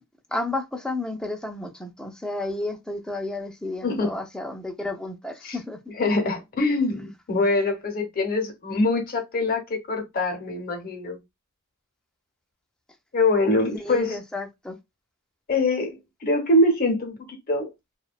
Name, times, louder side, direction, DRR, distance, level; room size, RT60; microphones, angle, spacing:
voice 1, 0.3-5.8 13.8-14.8, left 2 dB, 5° left, 0.4 m, -32 dB
voice 2, 3.8-4.2 5.4-5.6 6.0-11.2 13.1-14.2 15.5-17.2 17.5-17.7, left 2 dB, 40° left, 0.7 m, -24 dB
2.7 x 2.1 x 2.4 m
head